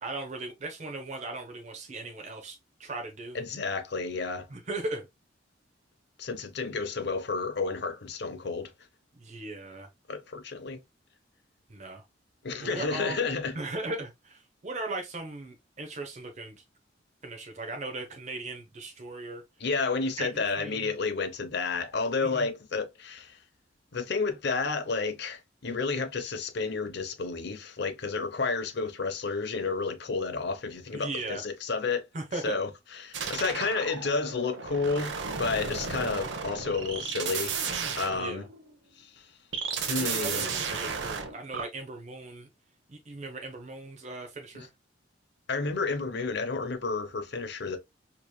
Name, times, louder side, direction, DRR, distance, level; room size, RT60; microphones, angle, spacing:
voice 1, 0.0-3.4 4.5-5.1 9.2-9.9 11.7-12.0 12.6-13.2 13.5-16.6 17.2-19.4 20.2-20.9 22.2-22.5 30.9-31.4 32.1-32.6 35.6-35.7 38.1-38.4 40.0-42.5 42.9-44.7, right 2 dB, 40° right, 0.6 m, -38 dB
voice 2, 3.3-4.5 6.2-8.7 10.1-10.8 12.4-13.6 19.6-23.4 23.9-32.1 32.4-38.4 39.0-39.1 39.8-40.5 44.5-44.7 45.5-47.8, left 4 dB, 60° left, 0.7 m, -31 dB
sound 1, 33.1-38.7 39.5-41.6, right 5 dB, 75° right, 0.8 m, -34 dB
4.7 x 3.0 x 2.2 m
head